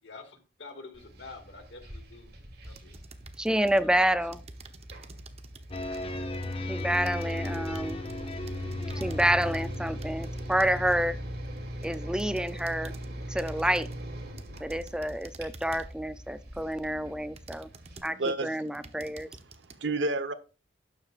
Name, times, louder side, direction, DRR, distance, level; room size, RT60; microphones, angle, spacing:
voice 1, 0.0-3.0 3.8-4.0, left 3 dB, 80° left, 2.2 m, -48 dB
sound 1, 0.9-18.0, right 1 dB, 60° right, 2.9 m, -42 dB
sound 2, 2.6-3.9 4.3-11.0 11.6-13.1 13.4-14.0 14.4-16.0 16.6-16.7 17.4-18.3 18.7-19.8, right 3 dB, 35° right, 0.9 m, -51 dB
voice 2, 3.4-4.4 6.7-8.1 8.9-11.2 11.8-12.9 13.3-13.9 14.6-17.7 18.0-19.3, right 1 dB, 5° right, 0.4 m, -28 dB
sound 3, 5.7-11.9, left 1 dB, 30° left, 1.0 m, -36 dB
voice 3, 17.9-18.9 19.2-19.3 19.8-20.3, right 2 dB, 85° right, 1.1 m, -31 dB
12.5 x 9.7 x 2.5 m
head